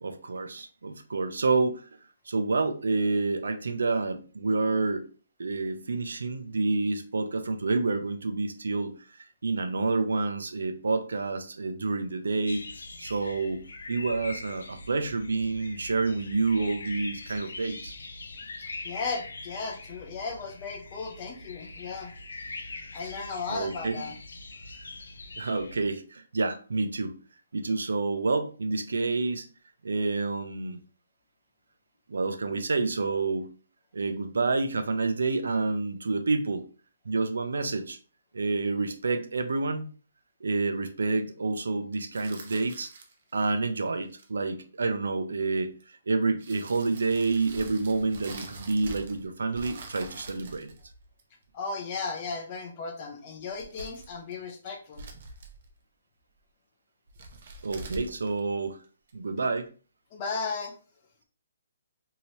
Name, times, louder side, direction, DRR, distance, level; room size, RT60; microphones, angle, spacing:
voice 1, 0.0-1.9 2.3-5.1 5.4-8.9 9.4-12.7 13.0-13.6 13.9-17.9 23.5-24.1 25.4-27.2 27.5-29.5 29.8-30.8 32.1-33.5 33.9-36.7 37.1-38.0 38.3-39.9 40.4-42.9 43.3-50.7 57.6-58.8 59.1-59.7, right 3 dB, 85° right, 8 dB, 0.5 m, -28 dB
sound 1, 12.4-25.8, left 3 dB, 80° left, 0.5 m, -43 dB
voice 2, 18.6-22.1 22.9-24.1 51.5-55.0 60.1-60.7, left 4 dB, 20° left, 3 dB, 0.4 m, -35 dB
sound 2, 42.1-43.3 44.0-44.4 45.8-45.9 46.4-49.3 49.5-51.4 53.4-54.3 54.7-55.7 57.1-59.1, right 3 dB, 35° right, 0.5 m, -45 dB
2.8 x 2.8 x 3.1 m, 0.38 s
hypercardioid pair, 180°, 0 cm